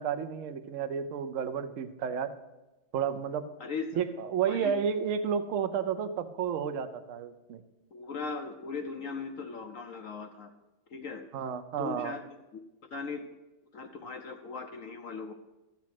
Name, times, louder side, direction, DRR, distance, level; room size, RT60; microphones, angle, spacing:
voice 1, 0.0-2.3 2.9-3.5 4.0-7.6 11.3-12.1, right 7 dB, 65° right, 10 dB, 0.7 m, -31 dB
voice 2, 4.4-4.8 7.9-10.5 10.9-11.2 11.8-12.2 12.5-12.6 12.9-13.2 13.7-15.3, left 4 dB, 65° left, 5 dB, 0.8 m, -38 dB
13.0 x 7.3 x 5.9 m, 1.0 s
omnidirectional pair, 2.2 m